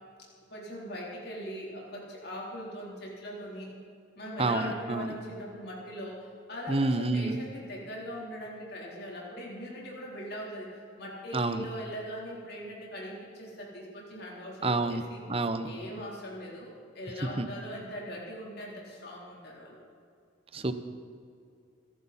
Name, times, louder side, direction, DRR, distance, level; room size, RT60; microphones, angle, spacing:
voice 1, 0.5-3.7 4.2-10.7 11.0-15.2 15.6-19.8, equal, 55° left, -3 dB, 3.7 m, -40 dB
voice 2, 4.4-5.1 6.7-7.4 11.3-11.6 14.6-15.0 15.3-15.7 17.4-17.5 20.5-20.7, right 2 dB, 30° right, 10 dB, 0.8 m, -28 dB
26.5 x 11.0 x 4.3 m, 2.4 s
head